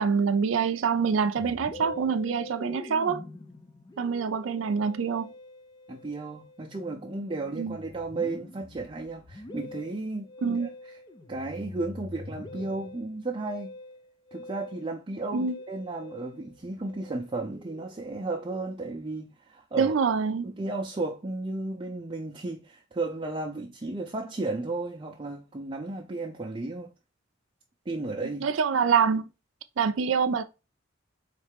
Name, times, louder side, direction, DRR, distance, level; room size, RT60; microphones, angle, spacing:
voice 1, 0.0-3.2 4.0-5.3 7.6-7.8 10.4-10.7 15.3-15.6 19.8-20.5 28.4-29.3 29.8-30.4, right 6 dB, 85° right, 0.4 m, -25 dB
Musical instrument, 1.4-19.0, left 2 dB, 20° left, 0.4 m, -45 dB
voice 2, 5.9-10.7 11.3-13.7 14.3-19.9 20.4-26.9 27.9-28.4, right 2 dB, 25° right, 0.5 m, -34 dB
4.1 x 3.2 x 3.3 m
head